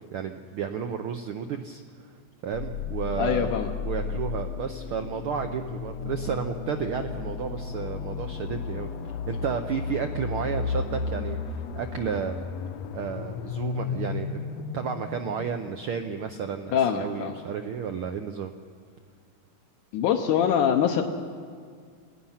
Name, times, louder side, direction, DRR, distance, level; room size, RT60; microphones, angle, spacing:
voice 1, 0.1-3.6 3.8-12.4 12.9-18.5, right 7 dB, 90° right, 6 dB, 1.2 m, -32 dB
sound 1, 2.5-16.3, left 5 dB, 70° left, 1.7 m, -34 dB
voice 2, 3.2-3.7 16.7-17.3 19.9-21.0, left 8 dB, 85° left, 3 dB, 2.5 m, -23 dB
28.0 x 18.0 x 5.7 m, 2.1 s
omnidirectional pair, 3.5 m